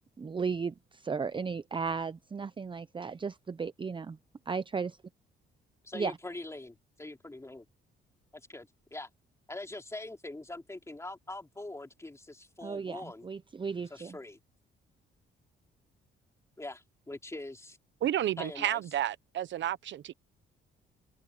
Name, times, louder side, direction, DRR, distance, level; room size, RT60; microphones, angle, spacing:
voice 1, 0.2-4.2 4.5-5.0 5.9-6.1 12.6-14.2, right 5 dB, 25° right, 0.6 m, -35 dB
voice 2, 5.8-7.7 8.3-9.1 9.5-13.3 13.9-14.4 16.6-17.8 18.4-18.8, left 2 dB, 15° left, 3.6 m, -43 dB
voice 3, 18.0-20.1, right 11 dB, 70° right, 0.9 m, -31 dB
open air
cardioid pair, 90°, 20 cm